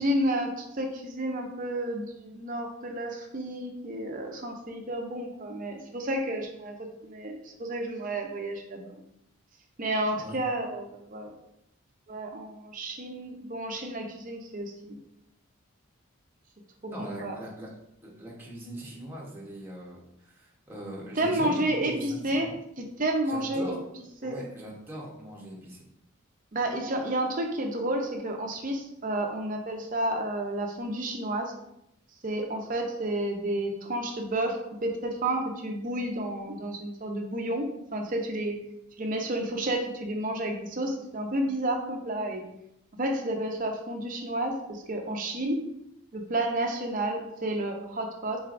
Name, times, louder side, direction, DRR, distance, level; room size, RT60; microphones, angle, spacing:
voice 1, 0.0-8.9 9.8-11.3 12.1-15.0 16.8-17.4 21.2-22.5 22.8-23.8 24.2-24.4 26.5-31.5 32.2-38.6 39.0-42.4 42.9-45.7 46.1-48.4, right 1 dB, 40° right, 3 dB, 0.6 m, -31 dB
voice 2, 10.1-10.4 16.9-17.7 18.0-22.5 23.3-23.8 24.2-25.8, right 1 dB, 10° right, -5 dB, 0.9 m, -41 dB
4.5 x 3.9 x 2.5 m, 0.80 s
head